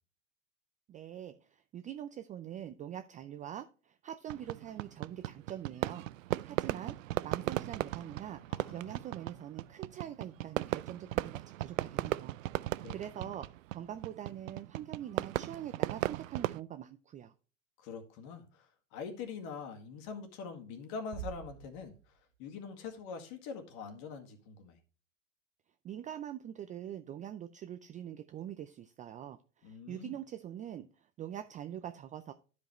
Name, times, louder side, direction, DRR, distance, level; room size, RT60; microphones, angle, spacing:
voice 1, 0.9-6.1 6.4-17.3 25.8-32.3, right 10 dB, 20° right, 0.4 m, -44 dB
Fireworks, 4.3-16.6, right 16 dB, 75° right, 0.5 m, -37 dB
voice 2, 8.5-9.1 12.8-13.3 17.8-22.1 22.4-24.8 29.6-30.2, left 5 dB, 55° left, 2.1 m, -44 dB
sound 1, 21.1-22.6, right 11 dB, 60° right, 1.2 m, -46 dB
12.0 x 5.1 x 3.1 m
hypercardioid pair, 100°, 39 cm